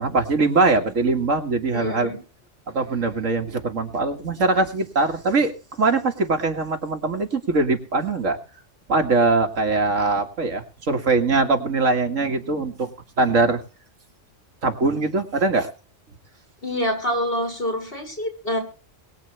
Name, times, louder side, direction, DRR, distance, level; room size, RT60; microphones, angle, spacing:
voice 1, 0.0-2.1 2.7-8.4 8.9-12.9 13.2-13.6 14.6-15.7, right 3 dB, 85° right, 4 dB, 2.3 m, -22 dB
voice 2, 1.7-2.2 16.6-18.6, equal, 45° left, 0 dB, 6.7 m, -26 dB
22.5 x 8.4 x 3.3 m, 0.37 s
omnidirectional pair, 1.3 m